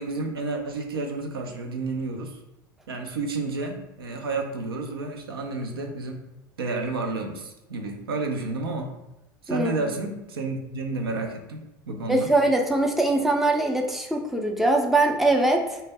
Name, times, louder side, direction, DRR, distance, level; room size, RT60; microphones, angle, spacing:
voice 1, 0.0-2.4 2.9-6.2 6.6-8.9 9.4-12.3, right 3 dB, 90° right, 3 dB, 0.4 m, -31 dB
voice 2, 12.1-15.8, right 2 dB, ahead, 2 dB, 0.4 m, -22 dB
2.1 x 2.0 x 3.4 m, 0.96 s
hypercardioid pair, 80°, 12 cm